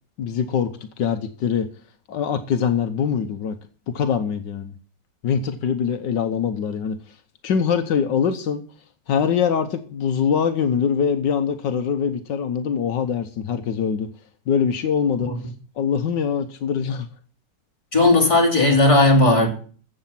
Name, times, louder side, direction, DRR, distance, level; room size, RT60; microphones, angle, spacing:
voice 1, 0.2-0.7 1.0-1.7 2.1-3.6 3.9-4.7 5.2-7.0 7.4-8.6 9.1-14.1 14.5-15.3 15.8-17.1, left 7 dB, 80° left, 1.6 m, -23 dB
voice 2, 17.9-19.5, left 2 dB, 15° left, 3.1 m, -16 dB
14.5 x 7.9 x 5.8 m
omnidirectional pair, 1.9 m